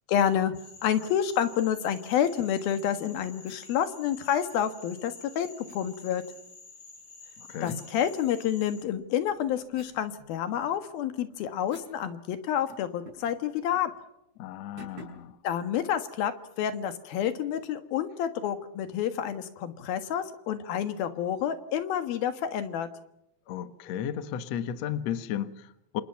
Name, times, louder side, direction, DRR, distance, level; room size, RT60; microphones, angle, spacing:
voice 1, 0.1-5.5 5.7-6.2 7.6-13.9 15.4-16.3 16.6-22.9, left 9 dB, 85° left, 3.4 m, -29 dB
Frog, 0.5-8.9, left 3 dB, 25° left, 3.0 m, -50 dB
sound 1, 3.4-3.7 5.7-5.8 7.6-8.7 9.1-12.0 12.3-12.4 12.7-13.4 13.7-13.9 14.8-15.3, right 1 dB, 50° right, 7.6 m, -51 dB
voice 2, 7.5-7.8 14.4-15.4 23.5-26.0, left 9 dB, 60° left, 2.2 m, -34 dB
27.5 x 27.5 x 5.8 m
omnidirectional pair, 4.1 m